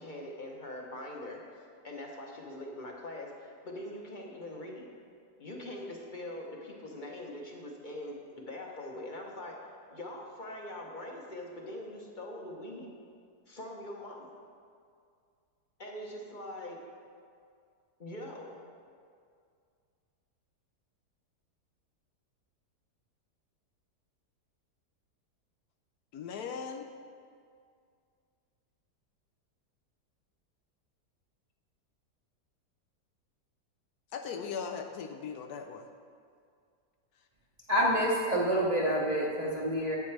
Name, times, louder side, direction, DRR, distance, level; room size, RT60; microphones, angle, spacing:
voice 1, 0.0-1.4 1.8-4.9 5.4-9.6 9.9-12.9 13.5-14.4 15.8-16.8 18.0-18.6, left 1 dB, 35° left, 0 dB, 0.9 m, -42 dB
voice 2, 26.1-26.9 34.1-35.9, left 6 dB, 75° left, 6 dB, 1.1 m, -38 dB
voice 3, 37.7-40.0, equal, 35° right, -5 dB, 0.8 m, -27 dB
10.0 x 8.3 x 3.3 m, 2.2 s
omnidirectional pair, 1.8 m